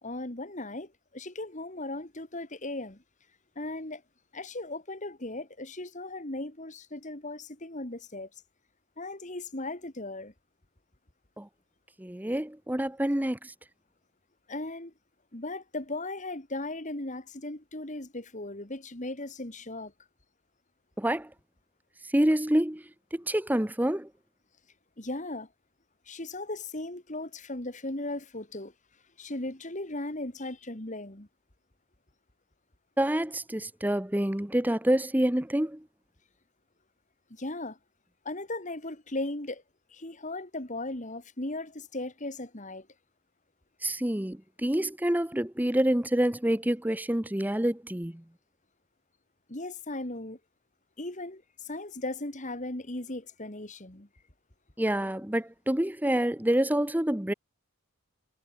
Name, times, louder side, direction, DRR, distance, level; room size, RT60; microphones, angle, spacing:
voice 1, 0.0-3.0 3.6-4.0 4.3-8.3 9.0-10.3 14.5-14.9 15.3-19.9 25.0-25.5 26.1-28.7 29.2-31.3 37.3-37.8 38.2-39.6 39.9-42.9 49.5-50.4 51.0-54.1, left 2 dB, 35° left, 2.3 m, -37 dB
voice 2, 12.0-13.5 21.0-21.3 22.1-22.8 23.1-24.1 33.0-35.8 43.8-48.2 54.8-57.3, right 1 dB, 10° right, 0.8 m, -27 dB
head